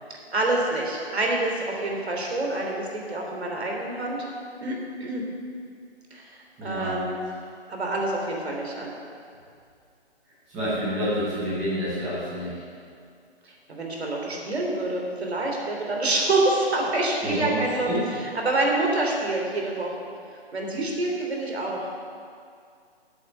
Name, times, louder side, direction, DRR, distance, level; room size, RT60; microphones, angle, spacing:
voice 1, 0.3-4.2 4.6-5.2 6.1-7.3 7.7-8.9 13.4-19.9 20.5-21.9, right 2 dB, 75° right, 0 dB, 3.2 m, -27 dB
voice 2, 6.6-7.0 10.5-12.6 17.2-18.0, equal, 5° right, -12 dB, 0.8 m, -28 dB
8.3 x 8.0 x 7.9 m, 2.3 s
hypercardioid pair, 170°, 32 cm